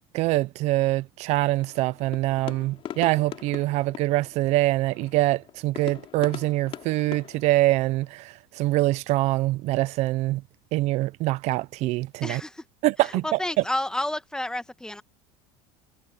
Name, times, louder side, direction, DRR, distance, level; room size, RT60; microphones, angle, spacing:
voice 1, 0.1-10.4 10.7-12.4 12.8-13.4, right 18 dB, 60° right, 0.7 m, -24 dB
sound 1, 1.5-8.1, left 11 dB, 45° left, 3.9 m, -42 dB
voice 2, 12.2-12.6 13.0-15.0, left 1 dB, 5° left, 1.7 m, -30 dB
supercardioid pair, 100°, 13 cm